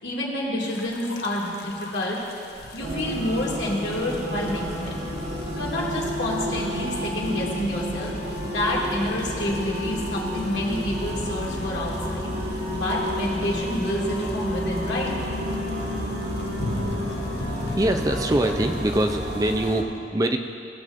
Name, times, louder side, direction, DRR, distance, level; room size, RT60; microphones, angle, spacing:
voice 1, 0.0-2.2 2.6-5.1 5.5-8.1 8.5-12.3 12.7-15.1, left 1 dB, 90° left, -5 dB, 2.0 m, -28 dB
sound 1, 0.7-19.8, left 3 dB, 65° left, 0.6 m, -42 dB
sound 2, 2.8-19.8, equal, 90° right, 1.6 m, -30 dB
sound 3, 10.6-19.0, left 1 dB, ahead, 2.0 m, -38 dB
voice 2, 17.5-20.4, right 1 dB, 20° right, 5 dB, 0.4 m, -24 dB
17.5 x 7.0 x 2.6 m, 2.5 s
head